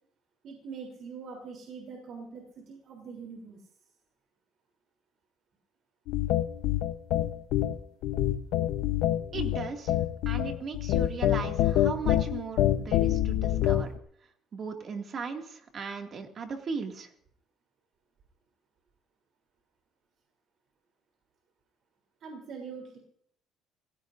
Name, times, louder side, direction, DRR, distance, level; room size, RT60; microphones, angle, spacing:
voice 1, 0.4-3.6 22.2-23.0, right 5 dB, 55° right, 0 dB, 3.5 m, -43 dB
sound 1, 6.1-14.0, left 12 dB, 80° left, 0.9 m, -26 dB
voice 2, 9.3-10.0 10.3-13.9 14.5-17.1, right 5 dB, 40° right, 3 dB, 2.3 m, -37 dB
27.5 x 16.5 x 2.7 m, 0.68 s
cardioid pair, 130°, 0 cm